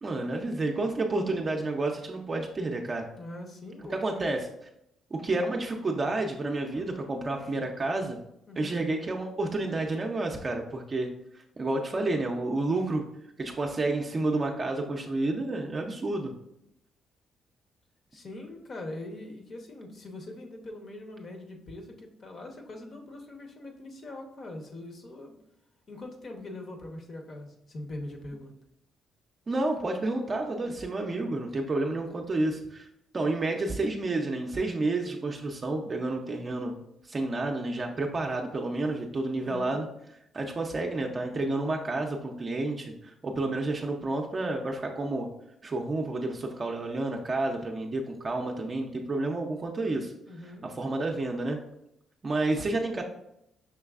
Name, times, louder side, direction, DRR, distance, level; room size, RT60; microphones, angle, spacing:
voice 1, 0.0-3.1 4.0-4.5 5.1-8.2 8.6-11.1 11.3-13.1 13.4-16.3 29.5-32.9 33.1-36.8 37.0-39.9 40.3-45.3 45.6-50.1 50.6-51.6 52.2-53.0, right 2 dB, 35° right, 1 dB, 0.5 m, -30 dB
voice 2, 3.2-4.2 8.5-8.8 18.1-25.4 25.9-28.5 39.4-39.8 50.2-50.7, left 2 dB, 50° left, 3 dB, 0.8 m, -42 dB
5.9 x 3.1 x 2.4 m, 0.80 s
cardioid pair, 90°, 0 cm